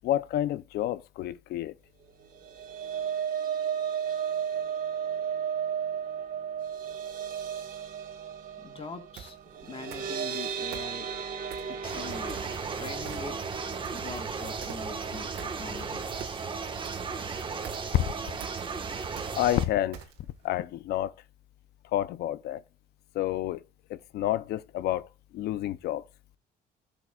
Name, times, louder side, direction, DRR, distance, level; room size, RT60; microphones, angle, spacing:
voice 1, 0.0-1.7 19.4-20.0 20.4-21.1 21.9-22.6 23.1-23.6 23.9-25.1 25.3-26.0, left 13 dB, 75° left, 0.6 m, -29 dB
sound 1, 2.2-16.5 16.8-17.1 17.4-17.5, right 8 dB, 55° right, 1.6 m, -35 dB
voice 2, 8.6-9.4 9.7-11.1 11.7-12.4 12.7-13.4 13.9-16.0, left 4 dB, 35° left, 1.5 m, -42 dB
sound 2, 9.2-9.4 9.9-10.4 10.7-11.8 12.3-12.8 13.0-13.5 13.8-20.4, right 9 dB, 85° right, 1.6 m, -45 dB
sound 3, 11.8-19.6, right 5 dB, 30° right, 1.4 m, -35 dB
14.5 x 7.0 x 2.4 m
cardioid pair, 110°, 17 cm